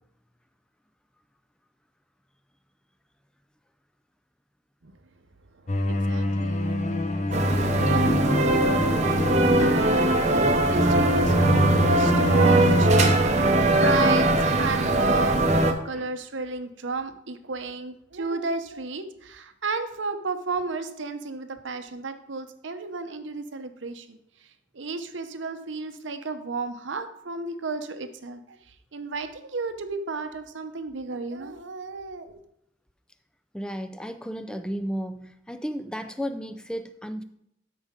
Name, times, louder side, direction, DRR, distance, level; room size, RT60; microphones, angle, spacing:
voice 1, 5.6-6.9 7.4-15.4 15.7-24.5 24.7-32.4, right 3 dB, 75° right, 9 dB, 0.8 m, -33 dB
sound 1, 5.7-13.2, left 1 dB, 40° left, 0.7 m, -26 dB
sound 2, 7.3-15.7, right 2 dB, 35° right, 0.8 m, -21 dB
voice 2, 33.5-37.2, equal, 5° left, 10 dB, 0.4 m, -33 dB
12.5 x 5.0 x 3.6 m, 0.77 s
head